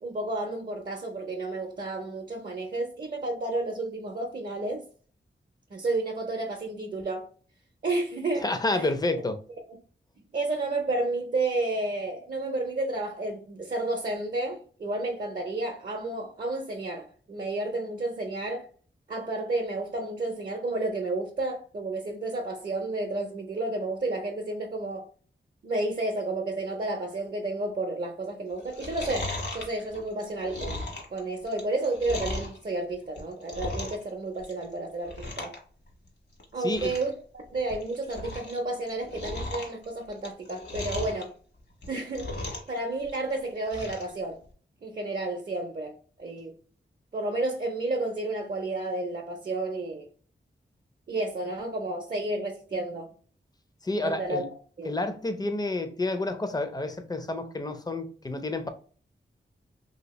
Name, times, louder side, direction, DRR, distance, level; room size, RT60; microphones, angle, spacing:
voice 1, 0.0-4.9 5.7-7.3 7.8-8.9 10.3-18.7 19.1-25.1 25.6-35.5 36.5-41.3 41.9-42.3 42.7-44.4 44.8-46.6 47.1-50.1 51.1-53.1 54.0-54.5 54.8-54.9, right 2 dB, 45° right, 0.6 m, -31 dB
voice 2, 8.4-9.4 36.6-36.9 53.8-54.4 54.9-58.7, left 2 dB, 20° left, 0.5 m, -29 dB
Chewing mastication, 28.6-32.6 33.0-34.1 34.4-34.7 35.0-35.6 35.9-36.0 36.4-36.5 36.7-37.1 37.5-38.6 38.9-41.2 41.7-42.8 43.0-44.1 44.5-44.6, left 2 dB, 60° left, 1.2 m, -36 dB
2.7 x 2.7 x 3.0 m
wide cardioid pair, 70°, 19 cm